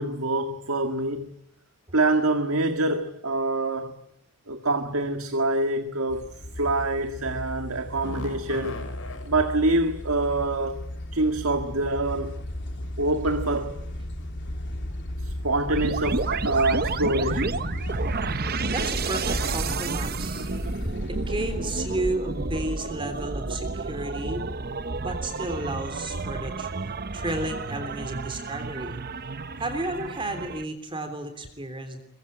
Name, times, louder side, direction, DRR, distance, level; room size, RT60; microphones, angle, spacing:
voice 1, 0.0-1.3 1.9-3.9 4.5-6.3 6.6-8.8 9.2-10.8 11.1-12.4 13.0-13.8 15.2-17.7, right 2 dB, 75° right, 1.9 m, -25 dB
sound 1, 6.1-22.1, left 1 dB, 55° left, 3.2 m, -35 dB
sound 2, 7.9-9.3 11.4-11.5 12.5-12.9 13.2-13.5 14.2-14.5 14.9-15.1 15.5-15.6, left 2 dB, 80° left, 6.0 m, -39 dB
sound 3, 15.7-30.6, right 3 dB, 45° right, 0.9 m, -31 dB
voice 2, 18.7-20.5 20.8-24.6 25.0-29.0 29.6-32.0, right 1 dB, 25° right, 3.4 m, -33 dB
23.5 x 22.0 x 9.2 m
head